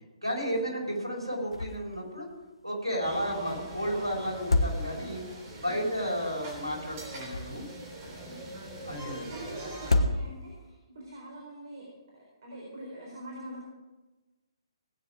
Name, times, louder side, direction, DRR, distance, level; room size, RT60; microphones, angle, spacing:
voice 1, 0.2-2.3 2.6-5.2 5.6-7.6 8.8-9.4, equal, 90° right, -1 dB, 5.1 m, -32 dB
sound 1, 1.5-2.0 2.3-2.4 4.3-5.3 7.0-7.9 9.7-10.7, left 2 dB, 70° left, 1.2 m, -28 dB
sound 2, 3.0-10.0, right 1 dB, 30° right, 3.5 m, -42 dB
voice 2, 8.3-8.7 9.3-11.9 12.4-13.6, right 1 dB, 50° right, -3 dB, 4.3 m, -44 dB
18.5 x 9.4 x 5.0 m, 1.2 s
figure-of-eight pair, 130°, 3 cm